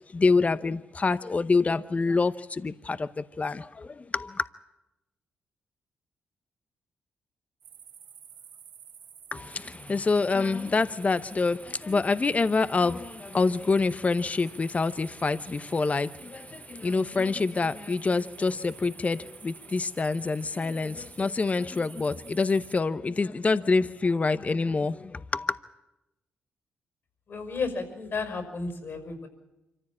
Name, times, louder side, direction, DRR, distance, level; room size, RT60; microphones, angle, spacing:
voice 1, 0.1-3.9 4.1-4.4 9.3-25.6, left 4 dB, 35° left, 0.8 m, -26 dB
sound 1, 7.6-22.8, right 8 dB, 85° right, 3.4 m, -50 dB
voice 2, 27.3-29.3, left 4 dB, 60° left, 5.8 m, -33 dB
25.5 x 14.5 x 8.7 m
supercardioid pair, 55°, 4 cm